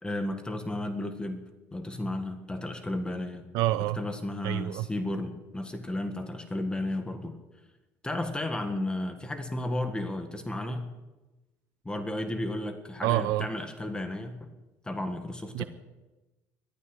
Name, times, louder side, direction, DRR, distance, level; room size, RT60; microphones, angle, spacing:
voice 1, 0.0-1.4 1.7-3.4 3.9-7.4 8.0-10.9 11.8-14.5 14.8-15.6, left 1 dB, 15° left, 7 dB, 1.7 m, -33 dB
voice 2, 3.5-4.0 4.4-4.9 13.0-13.5 15.5-15.6, right 16 dB, 75° right, 14 dB, 0.6 m, -27 dB
14.0 x 12.5 x 8.0 m, 1.1 s
cardioid pair, 105°, 7 cm